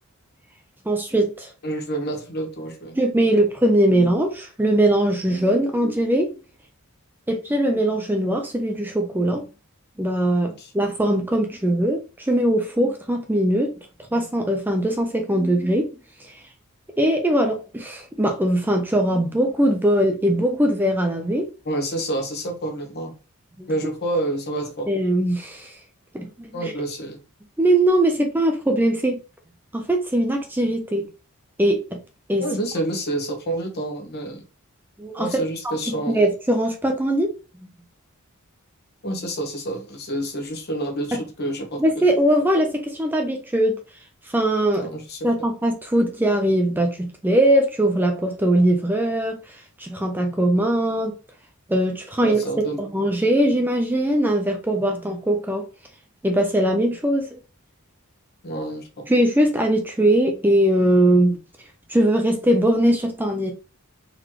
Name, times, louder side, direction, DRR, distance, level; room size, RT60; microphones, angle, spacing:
voice 1, 0.9-1.5 2.9-6.3 7.3-9.5 10.0-13.7 14.1-15.9 16.2-16.4 17.0-21.5 23.6-23.7 24.9-25.8 26.1-26.7 27.6-29.2 29.7-31.1 31.6-32.0 32.3-32.5 35.0-37.3 37.6-37.7 41.1-41.2 41.8-43.8 44.2-44.9 45.2-51.2 51.7-55.7 56.2-57.4 59.1-61.4 61.9-63.5, right 1 dB, 10° right, 4 dB, 0.5 m, -21 dB
voice 2, 1.6-3.0 10.4-10.7 21.6-23.1 23.7-24.9 26.5-27.2 32.4-34.4 35.2-36.2 39.0-42.0 44.8-45.2 52.2-52.8 58.4-59.0, right 1 dB, 50° left, 3 dB, 1.1 m, -28 dB
4.0 x 3.0 x 3.0 m, 0.32 s
head